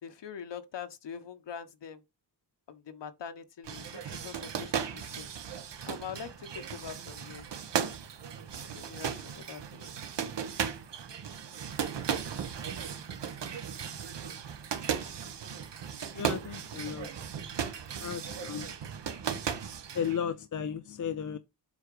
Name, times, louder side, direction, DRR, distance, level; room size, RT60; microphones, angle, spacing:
voice 1, 0.0-2.0 2.7-5.3 5.9-7.4 8.6-9.9, left 7 dB, 90° left, 1.4 m, -43 dB
sound 1, 3.6-20.2, right 8 dB, 85° right, 1.7 m, -36 dB
voice 2, 16.1-17.1 18.0-18.7 19.9-21.4, left 7 dB, 45° left, 0.7 m, -34 dB
8.0 x 4.7 x 4.9 m
wide cardioid pair, 165°, 41 cm